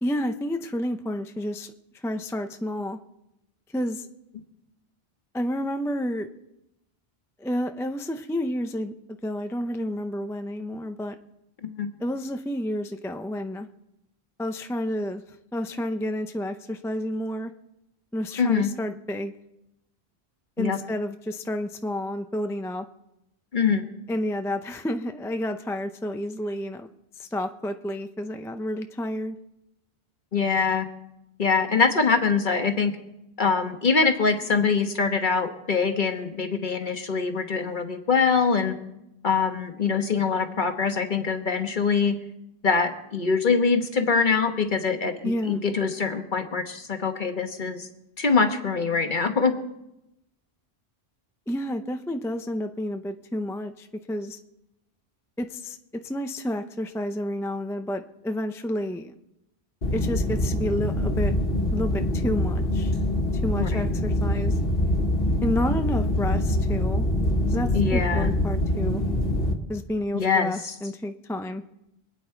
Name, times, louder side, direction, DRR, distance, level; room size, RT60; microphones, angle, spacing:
voice 1, 0.0-1.7 2.0-3.0 3.7-4.1 5.3-6.3 7.4-8.9 9.2-11.2 12.0-13.7 14.4-15.2 15.5-17.5 18.1-19.3 20.6-22.9 24.1-26.9 27.2-29.4 45.2-45.6 51.5-54.4 55.4-55.8 56.0-59.1 59.9-61.3 61.7-62.9 63.4-64.6 65.4-67.1 67.5-69.0 69.7-71.6, left 1 dB, 5° left, 7 dB, 0.4 m, -30 dB
voice 2, 18.4-18.7 20.6-20.8 23.5-23.8 30.3-30.9 31.4-32.9 33.4-38.8 39.2-42.2 42.6-47.9 48.2-49.5 63.6-63.8 67.7-68.3 70.1-70.7, left 5 dB, 50° left, 6 dB, 1.4 m, -24 dB
sound 1, 59.8-69.5, left 1 dB, 65° left, 1.8 m, -24 dB
25.0 x 9.1 x 4.5 m, 0.88 s
omnidirectional pair, 1.1 m